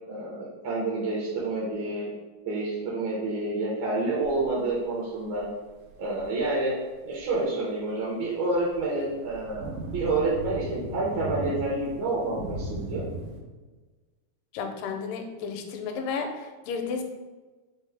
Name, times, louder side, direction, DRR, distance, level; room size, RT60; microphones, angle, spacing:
voice 1, 0.1-2.1 2.5-5.5 6.0-6.7 7.0-13.1, right 2 dB, 75° right, -6 dB, 1.9 m, -28 dB
sound 1, 4.2-4.5 5.4-5.5 6.0-6.5 7.2-7.3 8.7-13.4, right 2 dB, 90° right, 2.2 m, -37 dB
voice 2, 14.5-17.0, left 5 dB, 85° left, 4 dB, 2.1 m, -32 dB
5.5 x 2.0 x 3.3 m, 1.3 s
omnidirectional pair, 3.8 m